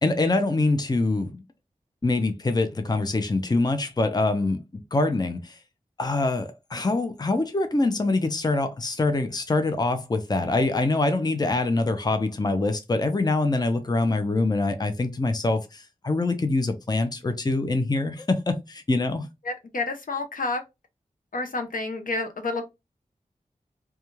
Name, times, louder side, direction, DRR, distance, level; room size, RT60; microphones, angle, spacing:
voice 1, 0.0-1.3 2.0-5.6 6.0-19.3, left 2 dB, 30° left, 0.5 m, -24 dB
voice 2, 19.5-20.6 21.3-22.6, left 3 dB, 75° left, 0.6 m, -29 dB
2.3 x 2.2 x 3.0 m
cardioid pair, 40°, 14 cm